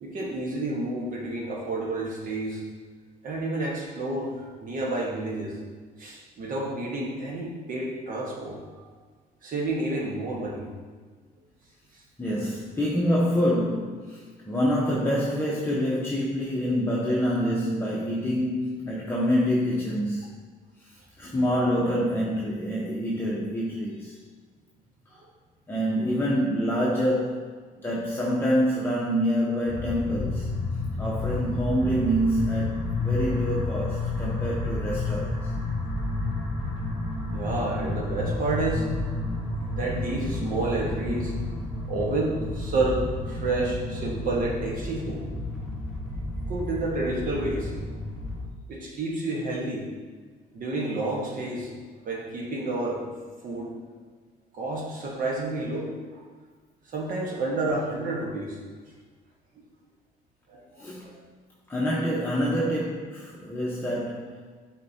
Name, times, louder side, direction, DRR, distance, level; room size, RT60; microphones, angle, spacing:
voice 1, 0.0-2.6 3.2-5.5 6.0-8.6 9.4-10.7 37.3-39.0 39.7-41.3 41.9-45.2 46.5-47.7 48.7-49.9 50.5-51.7 52.0-53.1 53.4-53.7 54.5-55.9 56.9-58.6 60.5-61.2, right 2 dB, 55° right, -2 dB, 1.3 m, -30 dB
voice 2, 12.2-20.3 20.8-24.1 25.7-27.5 27.8-30.5 31.0-35.5 60.8-61.1 61.7-64.6, equal, 15° left, -5 dB, 0.8 m, -26 dB
sound 1, 29.7-48.5, left 2 dB, 5° right, 1.6 m, -31 dB
7.6 x 4.4 x 2.8 m, 1.5 s
cardioid pair, 110°, 17 cm